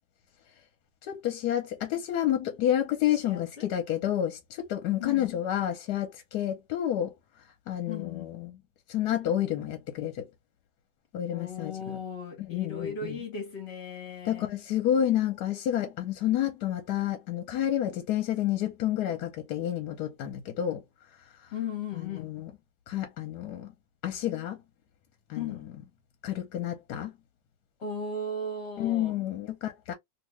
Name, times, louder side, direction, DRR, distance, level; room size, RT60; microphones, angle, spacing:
voice 1, 1.0-7.1 7.7-8.6 8.9-10.3 11.1-12.0 12.4-13.2 14.2-20.8 21.9-22.5 22.9-23.7 24.0-24.6 25.3-25.7 26.2-27.1 28.8-29.9, left 11 dB, 70° left, 1.1 m, -30 dB
voice 2, 3.1-3.7 5.0-5.3 7.9-8.3 11.3-14.5 21.5-22.3 25.3-25.7 27.8-29.2, left 4 dB, 50° left, 0.8 m, -37 dB
2.8 x 2.8 x 3.0 m
omnidirectional pair, 2.1 m